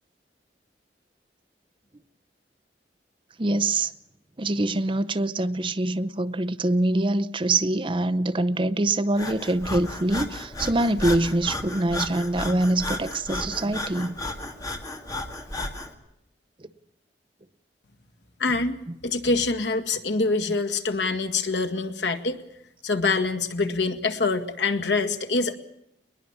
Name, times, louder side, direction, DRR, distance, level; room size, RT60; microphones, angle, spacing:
voice 1, 3.4-3.9 4.4-14.1 18.9-19.0, right 2 dB, 30° right, 0.7 m, -24 dB
Breathing, 9.2-15.9, left 1 dB, 20° left, 2.1 m, -34 dB
voice 2, 18.4-18.8 19.0-22.4 22.8-25.6, left 3 dB, 80° left, 1.9 m, -25 dB
21.0 x 21.0 x 7.2 m
head